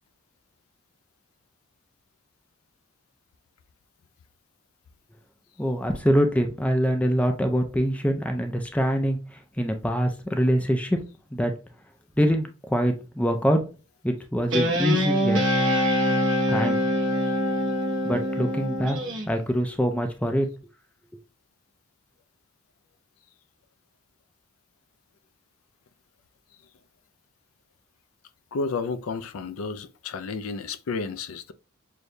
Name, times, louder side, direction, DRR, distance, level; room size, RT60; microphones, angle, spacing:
voice 1, 5.6-11.0 11.3-11.5 12.2-13.6 14.0-15.4 16.5-16.8 18.0-19.0 19.3-20.5, equal, 5° left, 0.4 m, -24 dB
Guitar, 14.5-19.3, equal, 60° right, 1.0 m, -24 dB
voice 2, 28.5-31.5, left 4 dB, 80° left, 0.4 m, -31 dB
6.3 x 2.6 x 2.2 m
head